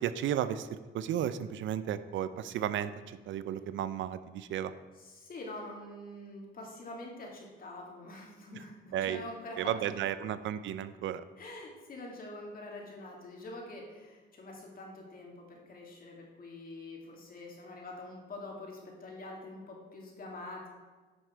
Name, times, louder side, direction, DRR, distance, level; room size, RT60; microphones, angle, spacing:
voice 1, 0.0-4.7 8.9-9.2 9.6-11.2, right 10 dB, 75° right, 13 dB, 0.5 m, -34 dB
voice 2, 5.0-9.7 11.4-20.7, left 2 dB, 45° left, -1 dB, 2.5 m, -45 dB
10.0 x 6.3 x 4.5 m, 1.3 s
cardioid pair, 90°, 20 cm